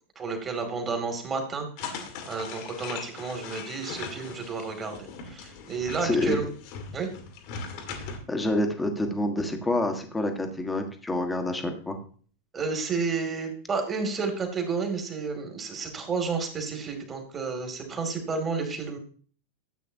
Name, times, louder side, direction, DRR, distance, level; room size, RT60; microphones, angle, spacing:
voice 1, 0.2-6.5 6.9-7.1 12.5-19.0, right 4 dB, 20° right, 5 dB, 2.6 m, -31 dB
sound 1, 1.8-8.2, left 5 dB, 45° left, 2.0 m, -39 dB
voice 2, 6.0-6.4 8.3-12.0, left 1 dB, 10° left, 5 dB, 1.7 m, -27 dB
13.5 x 8.3 x 2.8 m, 0.44 s
figure-of-eight pair, 90°, 0 cm